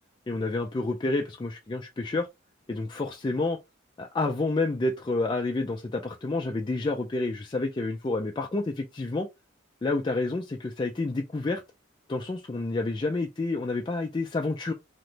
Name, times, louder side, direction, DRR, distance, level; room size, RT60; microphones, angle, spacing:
voice 1, 0.3-2.3 2.7-3.6 4.0-9.3 9.8-11.6 12.1-14.7, left 2 dB, 25° left, 0.4 m, -29 dB
3.1 x 2.9 x 2.5 m
head